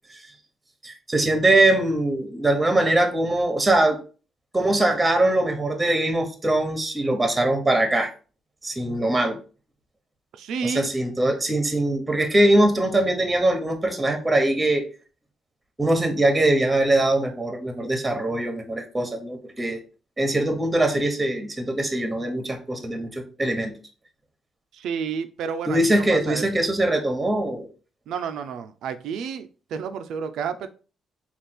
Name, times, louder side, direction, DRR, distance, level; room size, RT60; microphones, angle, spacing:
voice 1, 0.8-4.0 4.5-8.1 8.6-9.4 10.6-14.8 15.8-19.8 20.2-23.7 25.7-27.7, right 1 dB, 15° right, 4 dB, 0.9 m, -22 dB
voice 2, 10.3-10.9 24.7-26.4 28.1-30.7, right 7 dB, 80° right, 9 dB, 0.4 m, -31 dB
3.4 x 2.4 x 4.2 m, 0.37 s
cardioid pair, 90°, 0 cm